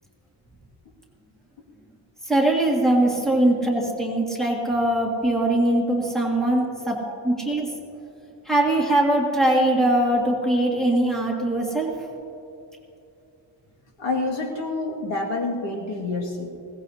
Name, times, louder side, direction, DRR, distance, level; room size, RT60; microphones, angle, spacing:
voice 1, 2.3-7.0 7.2-7.7 8.5-11.9, right 1 dB, ahead, -2 dB, 2.0 m, -21 dB
voice 2, 14.0-16.5, left 2 dB, 80° left, -1 dB, 2.2 m, -28 dB
21.0 x 17.5 x 2.8 m, 2.7 s
wide cardioid pair, 160°, 45 cm